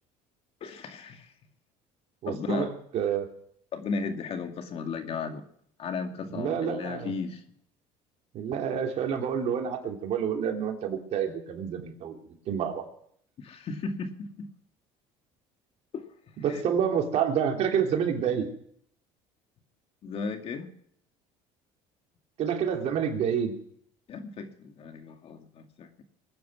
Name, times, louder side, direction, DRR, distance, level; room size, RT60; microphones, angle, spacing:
voice 1, 0.6-1.3 2.3-2.7 3.7-5.4 5.8-7.4 13.4-14.5 15.9-16.1 16.5-16.6 20.0-20.7 24.1-26.0, left 4 dB, 50° left, 6 dB, 2.1 m, -35 dB
voice 2, 2.2-2.7 2.9-3.3 6.3-7.1 8.3-12.2 12.5-12.8 16.4-18.5 22.4-23.5, right 8 dB, 55° right, 2 dB, 3.2 m, -28 dB
22.0 x 9.4 x 6.1 m, 0.66 s
supercardioid pair, 105°, 13 cm